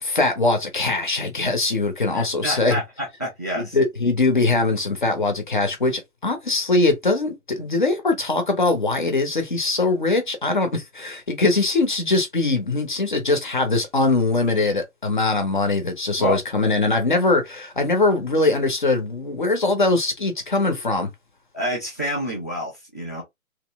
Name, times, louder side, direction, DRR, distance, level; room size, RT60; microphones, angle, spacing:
voice 1, 0.0-2.8 3.5-21.1, left 3 dB, 35° left, 1.0 m, -22 dB
voice 2, 2.1-3.8 16.2-16.4 21.5-23.2, equal, 10° left, 0.7 m, -28 dB
3.1 x 2.8 x 3.5 m
hypercardioid pair, 170°, 42 cm